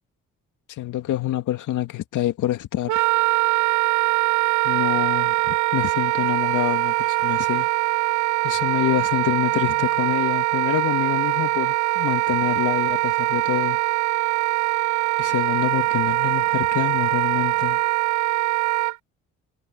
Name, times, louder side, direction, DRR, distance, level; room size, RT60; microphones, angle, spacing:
voice 1, 0.7-3.1 4.6-7.7 8.4-13.8 15.2-17.8, left 13 dB, 80° left, 2.3 m, -26 dB
Wind instrument woodwind instrument, 2.9-19.0, right 19 dB, 75° right, 0.5 m, -22 dB
cardioid pair, 90°, 30 cm